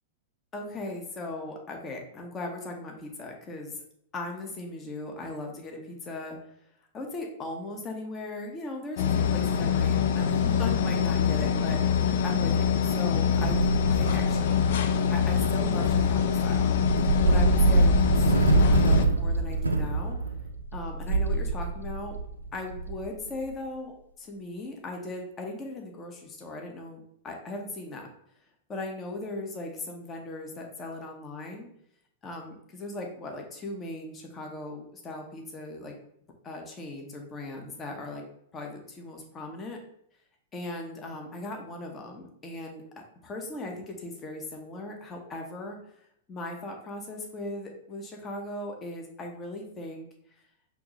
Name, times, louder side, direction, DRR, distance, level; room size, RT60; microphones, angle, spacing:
voice 1, 0.5-3.8 4.1-6.4 6.9-14.7 15.1-16.7 17.2-20.2 20.7-22.1 22.5-28.1 28.7-31.7 32.2-36.0 36.4-38.2 38.5-39.8 40.5-42.8 43.2-46.0 46.3-50.1, left 2 dB, 25° left, 2 dB, 0.9 m, -38 dB
sound 1, 9.0-19.1, left 7 dB, 60° left, 0.3 m, -25 dB
sound 2, 13.3-23.5, right 3 dB, 85° right, 0.5 m, -26 dB
5.8 x 2.7 x 3.0 m, 0.71 s
figure-of-eight pair, 100°, 0 cm